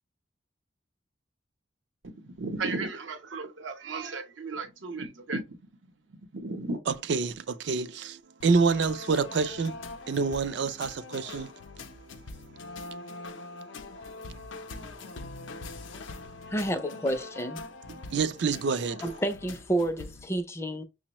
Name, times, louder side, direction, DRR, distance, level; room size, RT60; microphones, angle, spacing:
voice 1, 2.0-5.7 6.1-6.8, right 3 dB, 85° right, 0.8 m, -35 dB
voice 2, 6.9-9.8 10.1-14.5 15.0-15.1 15.4-15.7 16.1-16.4 18.1-19.0, right 4 dB, 65° right, 0.4 m, -29 dB
sound 1, 8.4-20.3, left 3 dB, 90° left, 0.5 m, -43 dB
voice 3, 16.5-17.6 19.0-20.8, right 1 dB, 15° left, 0.4 m, -30 dB
6.0 x 2.1 x 2.9 m
head